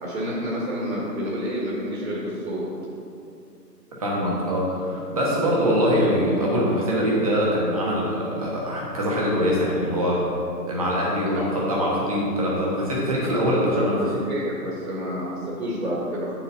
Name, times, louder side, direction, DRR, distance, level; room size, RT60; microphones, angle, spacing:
voice 1, 0.0-2.6 11.3-11.4 13.2-13.4 13.7-13.9 14.3-16.3, equal, 55° right, -5 dB, 2.0 m, -29 dB
voice 2, 4.0-10.2 10.7-14.0, equal, 20° right, -4 dB, 1.1 m, -23 dB
7.3 x 7.2 x 4.1 m, 2.6 s
hypercardioid pair, 170°, 50 cm